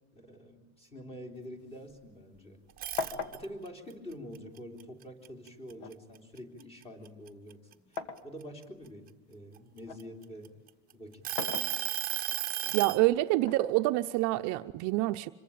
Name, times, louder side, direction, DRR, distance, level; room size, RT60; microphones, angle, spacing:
voice 1, 0.1-2.6 3.3-7.6 7.9-10.6 10.9-11.4 12.6-12.9, equal, 15° left, 3.6 m, -46 dB
sound 1, 1.3-2.6 3.0-4.9 5.8-8.3 8.8-10.1 11.1-12.3 13.4-14.4, left 5 dB, 60° left, 2.2 m, -41 dB
sound 2, 2.7-3.7 4.1-5.9 6.4-6.6 7.1-8.9 9.6-10.7 11.2-13.0, right 12 dB, 25° right, 1.0 m, -34 dB
voice 2, 12.7-15.3, right 18 dB, 50° right, 0.8 m, -27 dB
26.0 x 23.0 x 8.7 m
cardioid pair, 165°, 35 cm